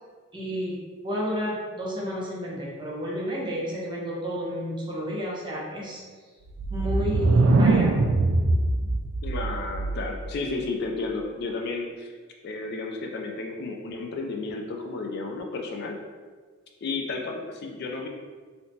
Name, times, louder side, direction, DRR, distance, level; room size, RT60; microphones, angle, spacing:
voice 1, 0.3-0.8 1.0-6.0 6.7-8.1, equal, 20° right, -5 dB, 0.7 m, -31 dB
sound 1, 6.5-10.3, right 2 dB, 65° right, 0.3 m, -22 dB
voice 2, 9.2-12.1 12.4-16.0 16.8-18.1, left 3 dB, 50° left, 2 dB, 0.3 m, -32 dB
3.2 x 2.8 x 2.7 m, 1.5 s
head